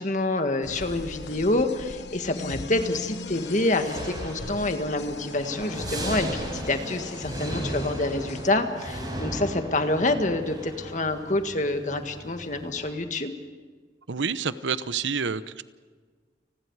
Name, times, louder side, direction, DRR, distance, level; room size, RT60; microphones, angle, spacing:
voice 1, 0.0-13.3, left 2 dB, 40° left, 6 dB, 1.8 m, -27 dB
sound 1, 0.6-8.5, left 2 dB, 70° left, 1.2 m, -39 dB
sound 2, 3.2-12.9, right 1 dB, 20° right, 7.0 m, -36 dB
voice 2, 14.1-15.6, right 5 dB, 90° right, 14 dB, 0.9 m, -28 dB
29.5 x 20.5 x 4.9 m, 1.5 s
head